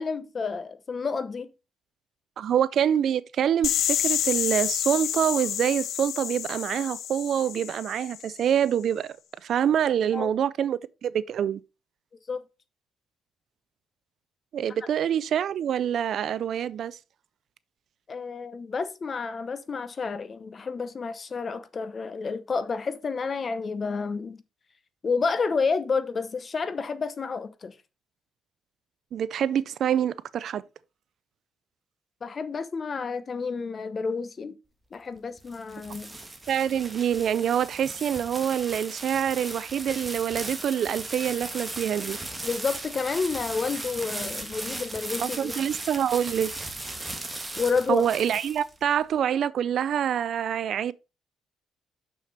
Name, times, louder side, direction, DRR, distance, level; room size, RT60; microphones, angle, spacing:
voice 1, 0.0-1.5 10.1-10.3 12.3-12.4 18.1-24.4 25.0-27.7 32.2-34.6 34.9-36.2 42.4-45.6 47.6-48.1, left 4 dB, 35° left, 0.9 m, -30 dB
voice 2, 2.4-9.1 9.4-11.6 14.5-17.0 29.1-30.6 36.5-42.2 45.2-46.5 47.9-50.9, right 9 dB, 60° right, 0.4 m, -26 dB
sound 1, 3.6-8.4, left 10 dB, 70° left, 0.5 m, -29 dB
sound 2, 35.2-49.0, right 2 dB, 15° right, 1.4 m, -37 dB
6.6 x 6.3 x 4.1 m
cardioid pair, 125°, 0 cm